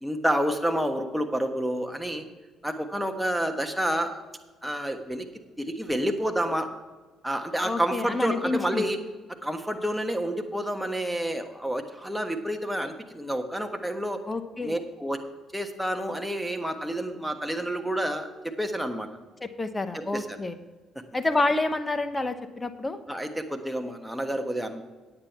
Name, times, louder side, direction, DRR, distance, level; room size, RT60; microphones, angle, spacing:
voice 1, 0.0-2.2 2.6-4.2 4.6-5.2 5.6-6.7 7.2-9.0 9.4-14.2 14.6-15.2 15.5-19.1 19.9-20.4 23.1-24.8, right 1 dB, 5° right, 4 dB, 1.4 m, -29 dB
voice 2, 7.6-8.9 14.3-14.8 19.4-20.5 21.1-23.0, left 2 dB, 20° left, 10 dB, 0.9 m, -28 dB
9.7 x 8.9 x 4.6 m, 1.3 s
hypercardioid pair, 55°, 0 cm